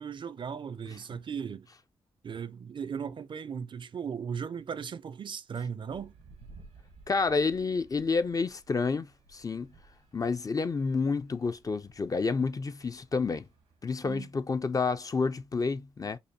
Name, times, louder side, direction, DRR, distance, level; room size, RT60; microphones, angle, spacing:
voice 1, 0.0-1.7 2.2-6.1 14.0-14.3, right 7 dB, 45° right, 0.4 m, -37 dB
sound 1, 5.9-13.9, right 3 dB, 90° right, 1.0 m, -57 dB
voice 2, 7.1-9.1 9.3-9.7 10.1-13.5 13.8-16.2, left 4 dB, 30° left, 0.4 m, -29 dB
5.3 x 2.1 x 2.7 m
supercardioid pair, 45°, 11 cm